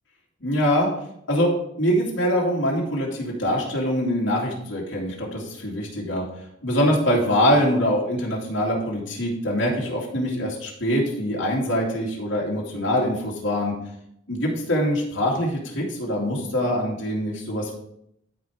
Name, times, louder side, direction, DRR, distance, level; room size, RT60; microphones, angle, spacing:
voice 1, 0.4-0.9 1.3-1.5 1.8-6.3 6.6-13.7 14.3-17.7, equal, 75° left, -4 dB, 2.5 m, -23 dB
12.5 x 4.7 x 3.6 m, 0.73 s
head